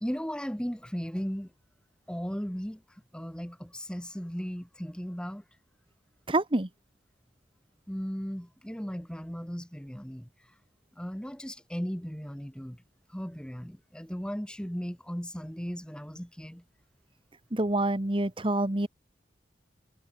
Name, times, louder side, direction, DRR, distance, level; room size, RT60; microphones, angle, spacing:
voice 1, 0.0-1.5 2.1-2.8 3.1-5.4 7.9-10.3 11.0-12.8 13.1-16.6, equal, 5° left, 1.6 m, -36 dB
voice 2, 6.3-6.7 17.5-18.9, right 1 dB, 30° right, 1.6 m, -27 dB
head